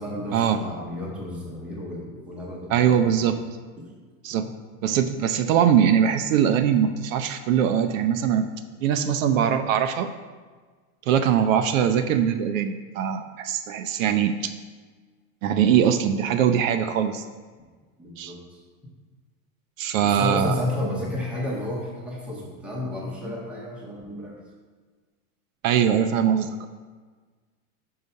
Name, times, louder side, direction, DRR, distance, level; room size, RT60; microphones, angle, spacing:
voice 1, 0.0-3.2 3.8-3.9 18.0-18.6 20.0-24.4, left 1 dB, 5° right, -3 dB, 0.6 m, -32 dB
voice 2, 2.7-3.4 4.2-4.5 4.8-8.5 8.8-10.1 11.1-14.5 15.4-17.2 18.2-18.3 19.8-20.6 25.6-26.7, right 8 dB, 65° right, 9 dB, 0.5 m, -22 dB
5.6 x 4.7 x 5.4 m, 1.4 s
supercardioid pair, 165°, 43 cm